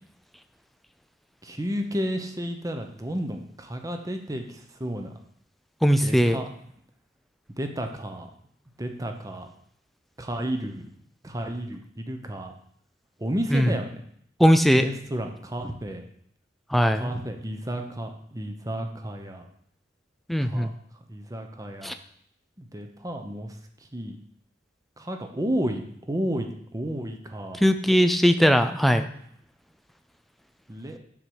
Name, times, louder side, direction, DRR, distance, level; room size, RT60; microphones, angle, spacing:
voice 1, 1.4-5.1 6.0-6.5 7.6-8.3 8.8-9.5 10.2-10.9 11.2-12.5 13.2-14.0 14.7-16.1 16.9-19.5 20.4-20.7 21.1-21.9 22.6-23.5 23.9-24.2 25.0-27.6 30.7-31.0, equal, 20° right, 5 dB, 0.9 m, -32 dB
voice 2, 5.8-6.4 13.5-13.7 14.4-14.9 16.7-17.1 20.3-20.7 21.8-21.9 27.6-29.1, equal, ahead, 8 dB, 0.4 m, -19 dB
7.2 x 6.7 x 4.8 m, 0.67 s
head